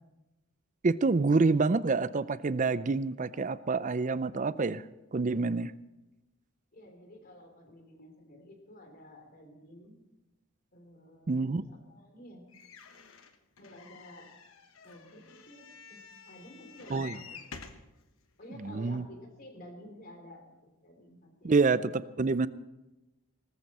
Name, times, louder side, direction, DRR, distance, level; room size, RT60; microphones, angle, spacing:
voice 1, 0.8-4.8 5.1-5.7 11.3-11.6 16.9-17.2 18.6-19.1 21.4-22.5, right 4 dB, 35° right, 16 dB, 0.4 m, -27 dB
voice 2, 6.7-10.0 10.7-12.4 13.6-14.3 14.8-16.0 16.2-17.4 18.4-22.0 22.3-22.5, left 1 dB, 40° left, 4 dB, 3.1 m, -52 dB
sound 1, 12.5-17.9 18.6-18.7 18.9-19.0, left 5 dB, 65° left, 1.1 m, -50 dB
19.0 x 14.0 x 4.2 m, 1.0 s
head